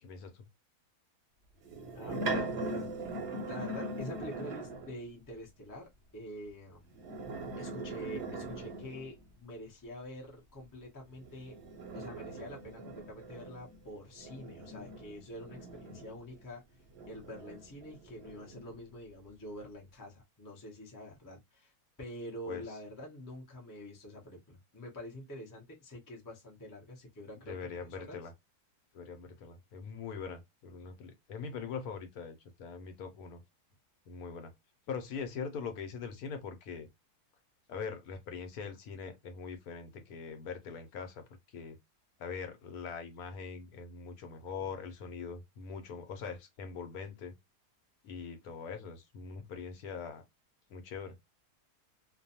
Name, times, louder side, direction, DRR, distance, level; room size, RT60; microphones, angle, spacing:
voice 1, 0.0-0.5 22.5-22.6 27.5-28.3 28.9-33.4 34.1-34.5 34.9-36.9 37.7-41.2 41.5-41.8 42.2-47.3 48.0-50.2 50.7-51.1, left 5 dB, 70° left, 1.0 m, -42 dB
sound 1, 1.6-5.0 6.9-9.3 11.2-16.4 16.9-18.7, right 2 dB, 55° right, 0.8 m, -40 dB
voice 2, 1.9-3.1 3.4-6.9 7.6-11.6 11.9-16.6 17.1-21.7 22.0-27.5 27.8-28.2, equal, 30° left, 0.3 m, -46 dB
2.5 x 2.2 x 2.6 m
omnidirectional pair, 1.7 m